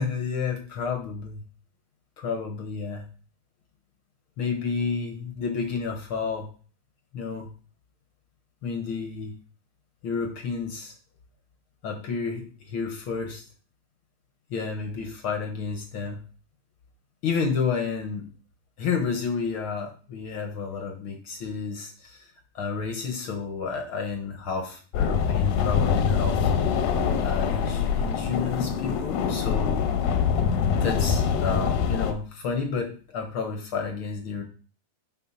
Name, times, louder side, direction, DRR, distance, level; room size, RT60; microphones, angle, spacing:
voice 1, 0.0-1.4 2.2-3.0 4.4-6.5 7.1-7.5 8.6-9.3 10.0-10.9 11.8-13.4 14.5-16.2 17.2-18.3 18.8-26.5 27.2-29.8 30.8-34.4, left 5 dB, 65° left, 4 dB, 1.3 m, -31 dB
sound 1, 24.9-32.1, left 7 dB, 90° left, 2.8 m, -24 dB
11.0 x 4.1 x 5.7 m, 0.40 s
omnidirectional pair, 4.1 m